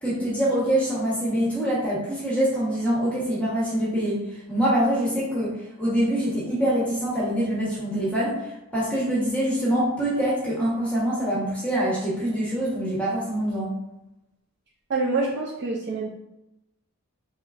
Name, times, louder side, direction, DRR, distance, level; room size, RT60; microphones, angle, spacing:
voice 1, 0.0-4.2 4.5-5.5 5.8-8.4 8.7-13.7, right 1 dB, 5° left, -8 dB, 1.0 m, -24 dB
voice 2, 14.9-16.1, right 3 dB, 50° right, -1 dB, 0.4 m, -26 dB
3.8 x 3.0 x 2.4 m, 0.90 s
head